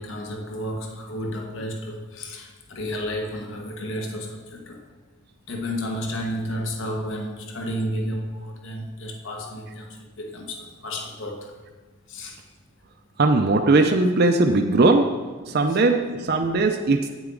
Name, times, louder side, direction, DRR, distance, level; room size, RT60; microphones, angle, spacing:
voice 1, 0.0-4.8 5.5-11.5 12.1-12.4, equal, 60° left, 2 dB, 1.2 m, -32 dB
voice 2, 13.2-15.1 15.4-17.1, right 2 dB, 45° right, 4 dB, 0.5 m, -19 dB
9.0 x 8.9 x 3.8 m, 1.4 s
head